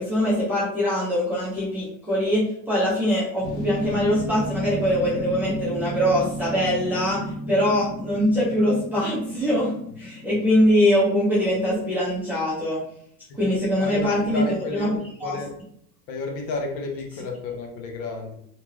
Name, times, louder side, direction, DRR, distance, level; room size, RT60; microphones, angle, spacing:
voice 1, 0.0-12.8 13.4-14.4 14.7-14.9 15.2-15.4, equal, 5° right, -10 dB, 0.4 m, -23 dB
sound 1, 3.4-11.9 12.2-12.3, left 1 dB, 30° left, 1.2 m, -33 dB
voice 2, 13.8-15.5 16.1-18.3, left 2 dB, 80° left, 2 dB, 0.9 m, -32 dB
2.8 x 2.3 x 3.1 m, 0.68 s
supercardioid pair, 145°, 50 cm